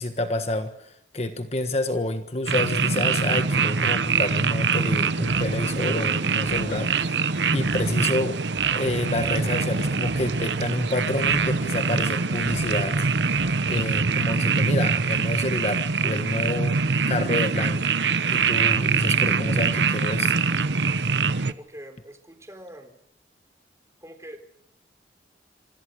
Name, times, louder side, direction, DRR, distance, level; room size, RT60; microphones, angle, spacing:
voice 1, 0.0-13.1 13.7-16.8 17.1-20.4, left 1 dB, 35° left, 7 dB, 1.5 m, -29 dB
sound 1, 2.5-21.5, right 5 dB, 90° right, 1.0 m, -24 dB
sound 2, 5.2-6.1 6.4-7.3 7.6-10.9 11.2-12.1 12.4-14.7, right 1 dB, 45° right, 4.1 m, -44 dB
voice 2, 21.3-23.0 24.0-24.5, equal, 15° right, 6 dB, 3.8 m, -44 dB
27.0 x 26.0 x 6.5 m, 0.73 s
head